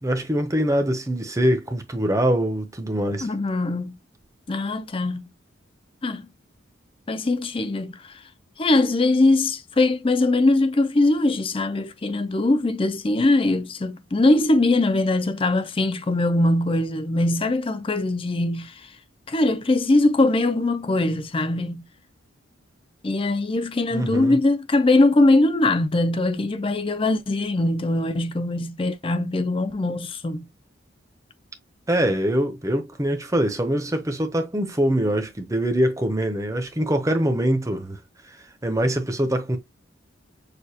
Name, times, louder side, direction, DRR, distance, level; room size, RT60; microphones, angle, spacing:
voice 1, 0.0-3.3 23.9-24.4 31.9-38.0 38.3-39.6, right 1 dB, 15° right, 0.7 m, -23 dB
voice 2, 3.2-4.0 4.5-5.3 6.0-6.3 7.1-8.2 8.6-19.0 19.3-21.9 23.0-30.5, left 2 dB, 25° left, 0.5 m, -21 dB
6.7 x 2.4 x 2.8 m
head